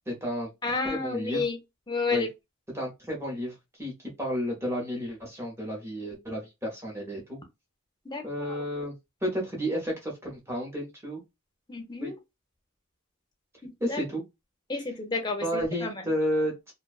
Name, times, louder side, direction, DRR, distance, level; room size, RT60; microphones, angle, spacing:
voice 1, 0.1-1.4 2.1-2.3 2.7-7.4 8.2-8.9 9.2-11.2 12.0-12.1 13.8-14.2 15.4-16.7, equal, 10° right, 0.8 m, -32 dB
voice 2, 0.6-1.6 1.9-2.3 8.0-8.6 11.7-12.2 13.6-14.0 14.7-16.0, left 3 dB, 20° left, 0.6 m, -31 dB
2.5 x 2.2 x 2.3 m
head